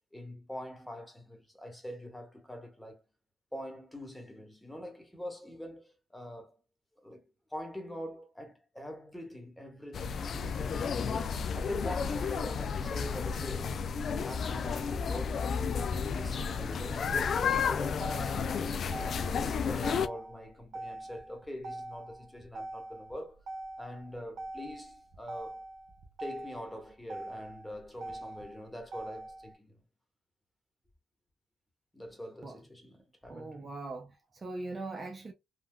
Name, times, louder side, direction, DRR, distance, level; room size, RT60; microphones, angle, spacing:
voice 1, 0.1-3.0 3.5-6.6 7.0-7.2 7.5-13.8 14.2-15.5 15.9-18.8 19.2-23.4 23.8-25.6 26.2-29.8 31.9-33.7, left 1 dB, 5° left, 1.1 m, -44 dB
sound 1, 9.9-20.1, left 6 dB, 55° left, 0.3 m, -32 dB
Motor vehicle (road), 17.6-29.6, right 2 dB, 70° right, 0.8 m, -44 dB
voice 2, 33.3-35.3, right 2 dB, 30° right, 0.5 m, -41 dB
3.6 x 2.2 x 2.2 m
cardioid pair, 90°, 0 cm